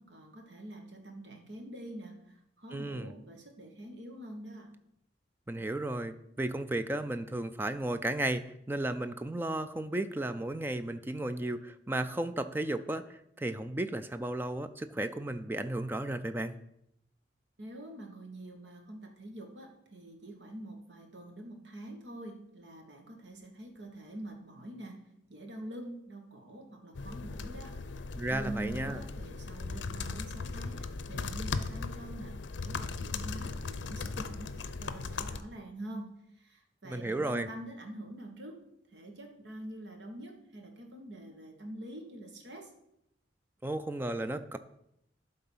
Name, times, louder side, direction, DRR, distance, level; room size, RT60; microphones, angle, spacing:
voice 1, 0.0-4.7 17.6-25.0 25.3-27.7 28.3-32.4 32.6-38.6 38.9-42.7, right 1 dB, 70° right, 3 dB, 1.5 m, -45 dB
voice 2, 2.7-3.1 5.5-16.6 28.1-29.0 36.8-37.5 43.6-44.6, right 1 dB, 10° right, 10 dB, 0.3 m, -34 dB
sound 1, 26.9-35.4, left 4 dB, 75° left, 0.5 m, -38 dB
11.5 x 3.9 x 5.5 m, 0.79 s
head